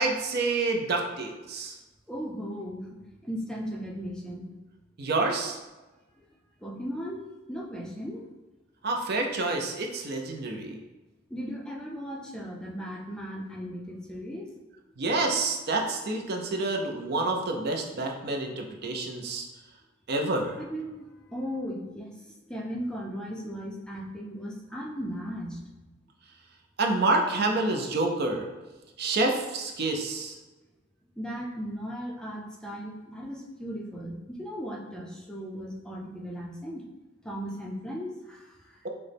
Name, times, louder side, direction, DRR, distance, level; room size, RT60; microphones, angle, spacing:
voice 1, 0.0-1.8 5.0-5.6 8.8-10.8 15.0-19.5 20.1-20.6 26.8-28.5 29.0-30.4, right 2 dB, 50° right, 2 dB, 0.5 m, -28 dB
voice 2, 2.1-4.5 6.2-6.3 6.6-8.3 11.3-14.5 20.5-25.6 31.2-36.8 37.2-38.8, equal, 5° left, -2 dB, 0.5 m, -37 dB
6.0 x 2.1 x 3.3 m, 1.1 s
head